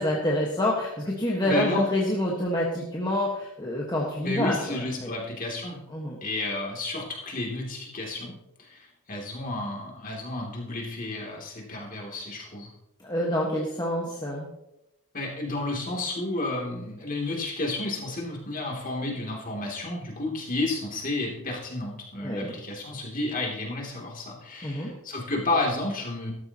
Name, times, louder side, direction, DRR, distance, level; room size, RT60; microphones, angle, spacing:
voice 1, 0.0-5.1 5.9-6.2 13.0-14.5 22.2-22.5 24.6-24.9, left 1 dB, 20° left, -3 dB, 1.5 m, -27 dB
voice 2, 1.4-1.9 4.2-5.8 6.2-8.3 8.6-12.7 15.1-26.3, left 2 dB, 40° left, -1 dB, 2.9 m, -31 dB
14.0 x 13.0 x 3.0 m, 0.87 s
head